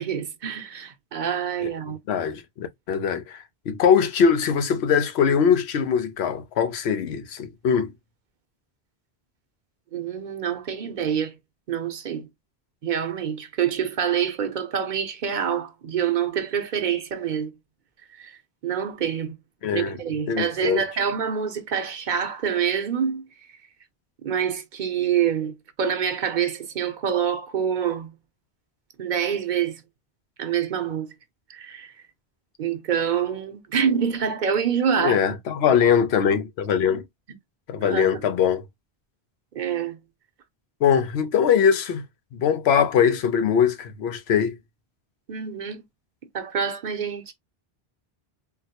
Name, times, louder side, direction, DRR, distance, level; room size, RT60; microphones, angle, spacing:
voice 1, 0.0-2.0 9.9-11.3 11.7-12.3 12.8-17.5 18.2-18.3 18.6-19.3 19.7-23.2 24.2-28.1 29.0-29.8 30.4-31.1 31.5-31.9 32.6-35.4 37.8-38.2 39.5-40.0 45.3-45.8 46.3-47.3, right 8 dB, 55° right, 0.7 m, -26 dB
voice 2, 2.1-7.9 19.6-20.0 20.3-20.8 35.0-37.0 37.7-38.6 40.8-42.0 42.3-44.6, left 7 dB, 85° left, 0.9 m, -22 dB
3.8 x 2.0 x 2.8 m
omnidirectional pair, 1.0 m